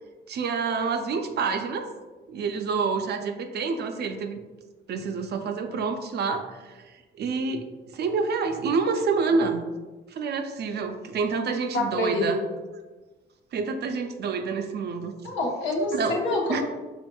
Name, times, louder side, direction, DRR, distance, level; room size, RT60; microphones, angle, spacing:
voice 1, 0.3-1.9 2.3-4.4 4.9-7.6 7.9-9.6 10.1-12.4 13.5-15.2 15.9-16.1 16.5-16.6, right 4 dB, 55° right, 6 dB, 0.5 m, -28 dB
voice 2, 11.7-12.3 15.2-16.6, left 2 dB, 70° left, -1 dB, 1.0 m, -26 dB
4.3 x 3.5 x 2.3 m, 1.2 s
cardioid pair, 90°, 20 cm